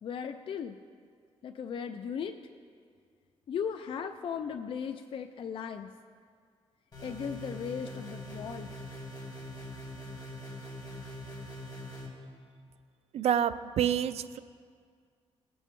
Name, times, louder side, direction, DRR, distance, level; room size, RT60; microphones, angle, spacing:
voice 1, 0.0-0.8 1.4-2.3 3.5-5.9 7.0-8.7, left 7 dB, 55° left, 6 dB, 0.4 m, -37 dB
sound 1, 6.9-12.1, equal, 40° left, 3.1 m, -43 dB
voice 2, 13.1-14.4, right 9 dB, 70° right, 13 dB, 0.4 m, -28 dB
18.5 x 7.0 x 3.2 m, 2.1 s
cardioid pair, 125°, 11 cm